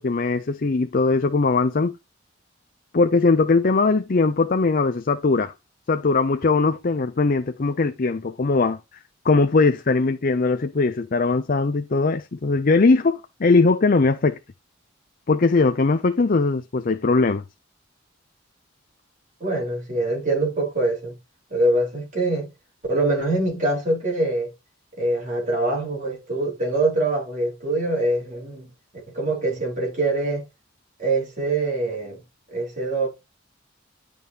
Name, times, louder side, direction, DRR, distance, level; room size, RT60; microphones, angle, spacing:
voice 1, 0.0-1.9 2.9-5.5 5.9-8.8 9.2-14.4 15.3-17.4, left 3 dB, 45° left, 0.6 m, -20 dB
voice 2, 19.4-21.1 21.5-22.5 22.9-24.5 24.9-28.7 29.1-30.4 31.0-32.2 32.5-33.1, right 2 dB, 40° right, 4.5 m, -24 dB
11.0 x 5.2 x 2.9 m
head